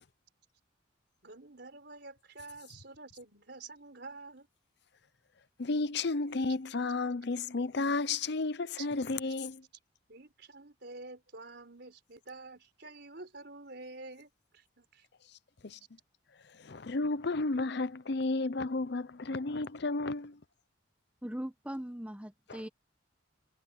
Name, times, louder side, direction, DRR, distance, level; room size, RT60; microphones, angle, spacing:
voice 1, 1.2-4.5 8.8-8.9 10.1-15.0, right 3 dB, 55° right, 4.9 m, -48 dB
voice 2, 5.6-9.6 15.6-15.8 16.6-20.4 22.5-22.6, left 3 dB, 55° left, 0.7 m, -32 dB
voice 3, 21.2-22.7, equal, 5° right, 1.1 m, -40 dB
head